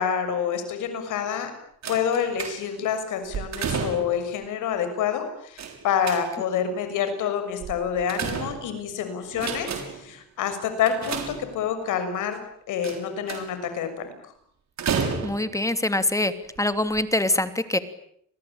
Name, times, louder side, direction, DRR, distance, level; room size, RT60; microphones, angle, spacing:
voice 1, 0.0-1.5 1.9-12.4 12.7-14.1, left 8 dB, 85° left, 9 dB, 6.8 m, -27 dB
sound 1, 1.8-2.9 3.3-4.3 5.6-6.6 7.6-8.9 9.3-10.1 10.8-11.8 12.8-13.7 14.8-15.6 16.4-16.6 16.9-17.0, right 6 dB, 65° right, 7.0 m, -31 dB
voice 2, 15.2-16.3 16.6-17.8, left 1 dB, 10° left, 10 dB, 3.0 m, -24 dB
30.0 x 21.5 x 8.9 m, 0.69 s
cardioid pair, 90°, 30 cm